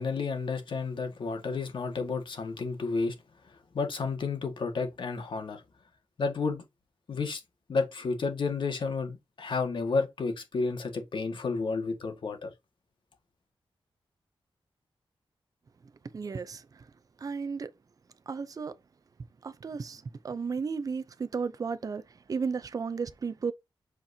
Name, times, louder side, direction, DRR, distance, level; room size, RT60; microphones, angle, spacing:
voice 1, 0.0-3.2 3.7-5.6 6.2-6.6 7.1-7.4 7.7-12.5, left 4 dB, 60° left, 1.8 m, -31 dB
voice 2, 16.1-16.9 17.2-17.7 18.3-18.8 19.4-23.5, right 5 dB, 40° right, 0.5 m, -34 dB
8.0 x 4.4 x 2.8 m
wide cardioid pair, 150°, 10 cm